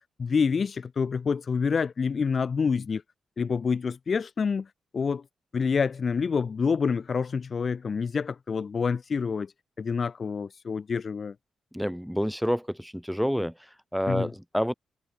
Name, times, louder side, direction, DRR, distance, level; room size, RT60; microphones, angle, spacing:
voice 1, 0.0-3.0 3.4-4.7 4.9-5.2 5.5-9.5 9.8-11.3 14.1-14.3, left 5 dB, 50° left, 3.0 m, -27 dB
voice 2, 11.7-13.5 13.9-14.7, equal, ahead, 7.4 m, -28 dB
cardioid pair, 75°, 0 cm